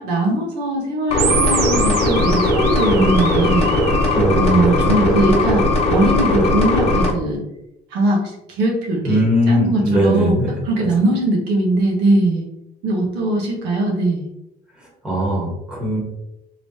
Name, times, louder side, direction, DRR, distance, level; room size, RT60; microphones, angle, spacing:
voice 1, 0.0-3.7 4.4-5.6 5.9-7.4 7.9-8.2 8.6-10.4 10.7-12.4 12.8-14.3, right 1 dB, 90° right, -1 dB, 1.0 m, -20 dB
sound 1, 1.1-7.1, left 2 dB, 40° left, 0.8 m, -18 dB
sound 2, 1.2-4.2, right 8 dB, 65° right, 0.5 m, -26 dB
voice 2, 4.1-5.0 9.0-10.9 14.8-16.0, equal, 5° right, -5 dB, 1.4 m, -20 dB
3.2 x 3.0 x 2.7 m, 0.88 s
cardioid pair, 110°, 17 cm